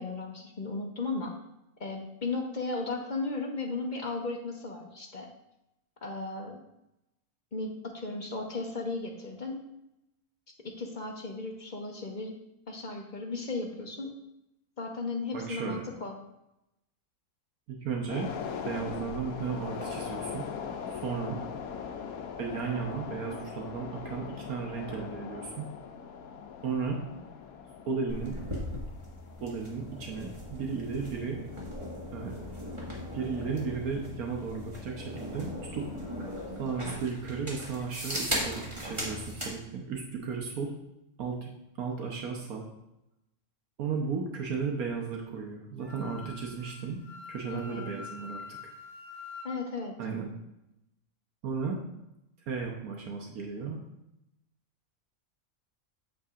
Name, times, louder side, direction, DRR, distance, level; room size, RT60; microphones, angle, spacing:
voice 1, 0.0-1.4 1.8-5.3 6.0-6.6 7.5-9.7 10.6-12.3 12.7-14.2 14.8-16.2 36.6-36.8 47.5-47.9 49.4-49.9, left 3 dB, 40° left, 2 dB, 0.8 m, -35 dB
voice 2, 15.3-15.8 17.7-18.3 18.6-20.4 20.9-21.4 22.4-25.7 26.6-27.0 27.9-28.4 29.4-31.4 32.1-32.3 33.1-35.9 36.6-40.7 41.2-41.5 41.8-42.7 43.8-47.0 47.3-48.4 50.0-50.3 51.4-51.8 52.5-53.8, right 5 dB, 80° right, 1 dB, 1.4 m, -34 dB
sound 1, 18.1-32.7 33.0-33.1, left 6 dB, 80° left, 1.2 m, -41 dB
sound 2, 28.1-39.5, equal, 20° right, 1.7 m, -38 dB
Wind instrument woodwind instrument, 45.8-49.5, left 5 dB, 45° right, 2.1 m, -45 dB
8.3 x 7.8 x 2.5 m, 0.88 s
omnidirectional pair, 1.5 m